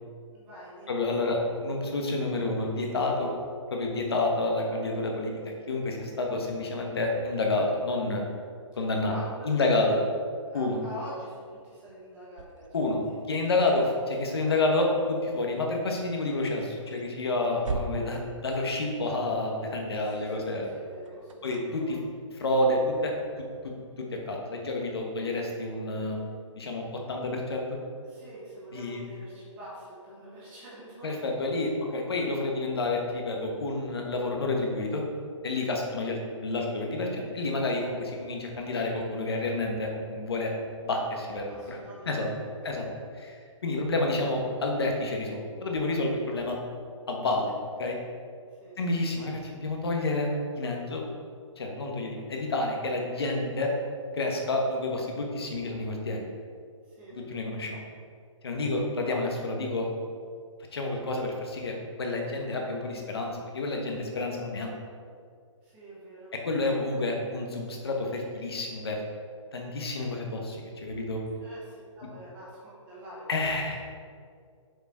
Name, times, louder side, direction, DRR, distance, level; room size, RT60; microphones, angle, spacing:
voice 1, 0.3-1.1 9.0-9.9 10.4-13.2 20.1-21.6 21.8-22.0 28.0-31.1 35.8-36.0 41.3-42.9 48.5-48.8 56.8-57.2 58.5-59.0 65.6-66.3 71.4-73.8, equal, 10° right, -8 dB, 1.1 m, -46 dB
voice 2, 0.9-3.3 3.7-8.2 8.8-9.1 9.4-10.0 10.5-10.8 12.7-13.0 13.3-20.7 21.4-22.0 22.4-23.1 23.6-26.2 26.5-27.8 28.7-29.0 31.0-35.0 35.4-40.5 40.8-41.8 42.0-42.3 42.6-42.9 43.1-46.6 47.1-47.5 47.8-48.0 48.8-50.3 50.5-51.0 51.6-53.7 54.1-56.2 57.1-57.8 58.4-59.9 60.7-64.7 66.4-69.0 69.5-71.2 73.3-73.8, left 2 dB, 50° left, 1 dB, 1.2 m, -29 dB
sound 1, 11.2-19.4 20.5-22.2, right 3 dB, 75° right, 0.7 m, -43 dB
6.5 x 4.8 x 4.6 m, 2.2 s
hypercardioid pair, 180°, 17 cm